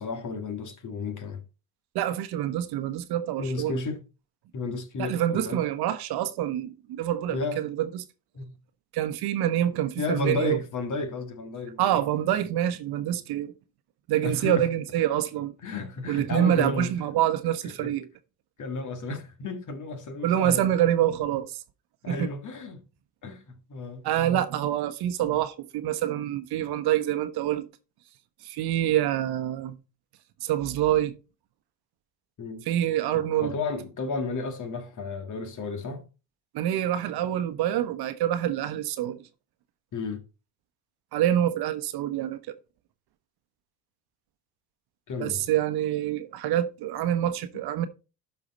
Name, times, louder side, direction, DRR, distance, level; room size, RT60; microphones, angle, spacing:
voice 1, 0.0-1.4 3.4-4.0 4.5-5.6 7.3-7.6 8.3-8.5 10.0-12.0 14.2-14.7 15.6-16.9 17.8-17.9 18.6-20.7 22.0-22.8 23.2-24.1 32.4-32.7 33.1-36.1 39.9-40.2 45.1-45.5, left 3 dB, 45° left, 2.0 m, -33 dB
voice 2, 1.9-3.8 5.0-8.0 8.9-10.6 11.8-13.5 14.1-15.5 16.1-18.1 20.2-21.6 22.1-22.3 24.0-27.7 28.4-29.8 30.4-31.2 32.7-33.5 36.5-39.2 41.1-42.5 45.2-47.9, right 11 dB, 60° right, 1.1 m, -26 dB
12.0 x 4.7 x 4.2 m
hypercardioid pair, 75°, 42 cm